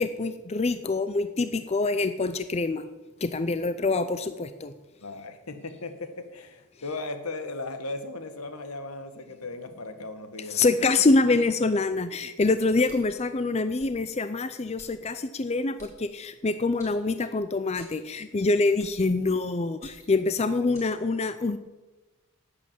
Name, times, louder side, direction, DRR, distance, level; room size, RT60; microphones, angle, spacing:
voice 1, 0.0-2.8 3.2-4.7 10.5-21.6, left 3 dB, 30° left, 11 dB, 0.5 m, -25 dB
voice 2, 5.0-10.6 12.8-13.0 20.6-20.7, left 2 dB, 80° left, 8 dB, 1.4 m, -37 dB
sound 1, 12.8-13.3 13.8-13.9 14.8-14.9 15.8-15.9 16.8-17.4 17.8-18.0 18.8-19.0 19.7-20.2 20.7-20.9, equal, 15° left, 4.4 m, -51 dB
11.5 x 8.5 x 7.3 m, 1.1 s
head